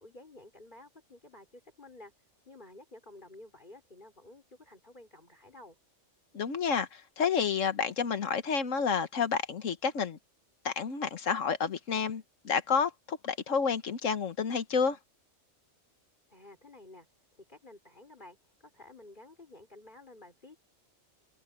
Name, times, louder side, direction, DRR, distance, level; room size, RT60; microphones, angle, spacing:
voice 1, 0.0-2.1 2.4-5.8 16.3-17.1 17.5-20.7, left 2 dB, 35° left, 4.7 m, -52 dB
voice 2, 6.3-10.2 10.6-15.0, left 6 dB, 70° left, 1.6 m, -30 dB
omnidirectional pair, 1.4 m